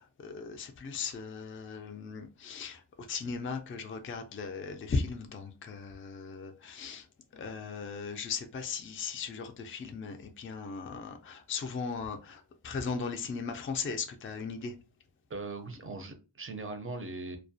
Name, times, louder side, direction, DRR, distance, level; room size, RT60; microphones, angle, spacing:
voice 1, 0.2-2.8 3.1-7.0 7.3-14.7, left 5 dB, 30° left, 5 dB, 0.4 m, -37 dB
voice 2, 15.3-17.4, right 3 dB, 30° right, 7 dB, 0.5 m, -40 dB
2.3 x 2.1 x 2.6 m, 0.31 s
wide cardioid pair, 75°, 50 cm